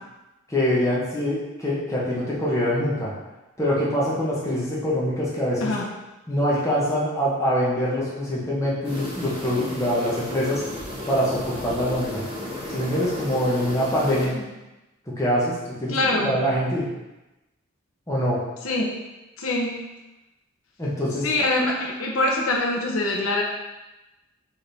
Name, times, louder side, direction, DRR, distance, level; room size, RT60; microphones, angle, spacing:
voice 1, 0.5-3.1 3.6-5.7 6.3-10.6 11.1-12.2 12.7-14.3 15.1-16.0 16.2-16.8 18.1-18.4 20.8-21.3, equal, 15° left, -7 dB, 0.9 m, -24 dB
sound 1, 8.8-14.3, left 1 dB, 25° right, 1.2 m, -34 dB
voice 2, 15.9-16.4 18.6-18.9 19.4-19.8 21.2-23.4, left 2 dB, 75° left, -2 dB, 0.8 m, -24 dB
4.2 x 3.7 x 3.4 m, 1.0 s
head